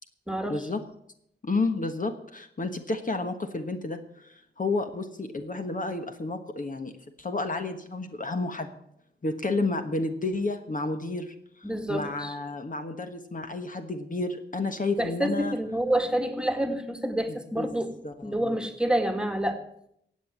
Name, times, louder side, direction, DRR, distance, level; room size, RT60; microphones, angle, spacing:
voice 1, 0.5-0.8 1.4-6.9 7.2-8.8 9.2-15.6 17.3-18.6, left 3 dB, 45° left, 6 dB, 1.4 m, -31 dB
voice 2, 11.6-12.3 15.0-17.9 18.2-19.6, right 1 dB, 5° right, 5 dB, 1.9 m, -28 dB
15.5 x 8.5 x 7.3 m, 0.73 s
wide cardioid pair, 75°, 19 cm